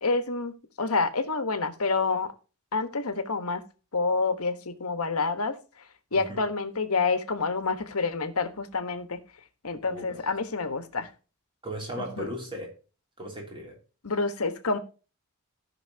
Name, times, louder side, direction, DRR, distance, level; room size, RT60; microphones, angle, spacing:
voice 1, 0.0-2.3 2.7-3.6 3.9-5.5 6.1-9.2 9.6-11.1 12.0-12.3 14.0-14.8, left 4 dB, 70° left, 1.3 m, -28 dB
voice 2, 6.1-6.4 9.9-10.3 11.6-12.8 13.2-13.8, equal, 25° right, 3.0 m, -37 dB
17.5 x 6.0 x 2.8 m
head